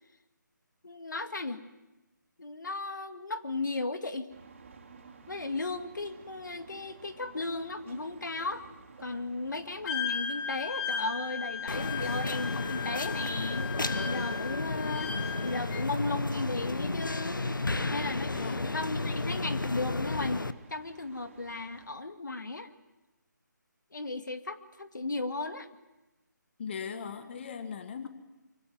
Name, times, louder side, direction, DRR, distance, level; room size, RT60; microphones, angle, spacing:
voice 1, 0.8-1.6 2.4-4.3 5.3-8.6 9.0-13.7 14.0-15.2 15.4-17.4 17.9-22.7 23.9-25.7, left 3 dB, 70° left, 9 dB, 2.1 m, -35 dB
sound 1, 4.3-21.9, right 4 dB, 40° right, 3.7 m, -54 dB
Wind instrument woodwind instrument, 9.9-15.9, left 7 dB, 10° left, 1.2 m, -36 dB
sound 2, 11.7-20.5, left 2 dB, 85° left, 1.3 m, -33 dB
voice 2, 26.6-28.1, left 6 dB, 35° left, 10 dB, 1.6 m, -38 dB
25.0 x 24.5 x 9.4 m, 1.0 s
figure-of-eight pair, 155°, 10 cm